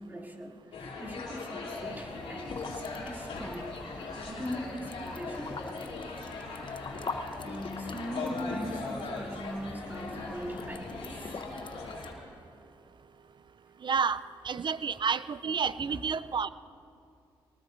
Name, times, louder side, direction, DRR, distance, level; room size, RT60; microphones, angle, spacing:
voice 1, 0.0-5.9 7.0-11.4 15.9-16.0, equal, 20° right, -1 dB, 2.7 m, -41 dB
sound 1, 0.7-12.1, left 3 dB, 75° left, 2.9 m, -40 dB
sound 2, 1.8-12.1, left 4 dB, 50° left, 1.0 m, -44 dB
voice 2, 13.8-16.5, right 6 dB, 50° right, 16 dB, 0.5 m, -30 dB
23.0 x 19.5 x 2.6 m, 2.6 s
supercardioid pair, 50°, 10 cm